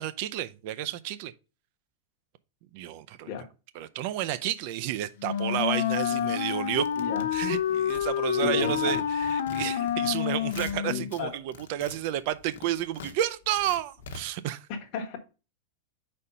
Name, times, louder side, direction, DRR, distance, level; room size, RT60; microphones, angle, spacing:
voice 1, 0.0-1.3 2.7-3.3 3.7-6.9 7.3-14.7, right 12 dB, 45° right, 0.5 m, -31 dB
Wind instrument woodwind instrument, 5.2-11.1, left 9 dB, 70° left, 0.6 m, -28 dB
sound 1, 6.7-8.4 8.6-10.1 10.4-11.2 11.5-14.2, left 5 dB, 90° left, 1.0 m, -44 dB
voice 2, 8.4-9.0 10.8-11.3 14.7-15.2, left 7 dB, 35° left, 1.1 m, -34 dB
4.9 x 4.3 x 5.4 m
supercardioid pair, 160°, 0 cm